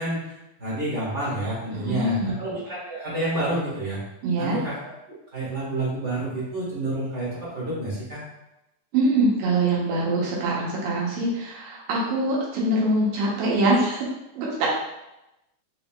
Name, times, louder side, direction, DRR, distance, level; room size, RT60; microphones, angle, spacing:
voice 1, 0.0-4.0 4.4-4.7 5.1-8.2, right 1 dB, 30° right, -8 dB, 1.3 m, -29 dB
voice 2, 1.8-2.4 4.2-4.6 8.9-14.1 14.4-14.7, right 2 dB, 85° right, -4 dB, 2.7 m, -23 dB
5.6 x 3.6 x 2.4 m, 0.92 s
omnidirectional pair, 3.8 m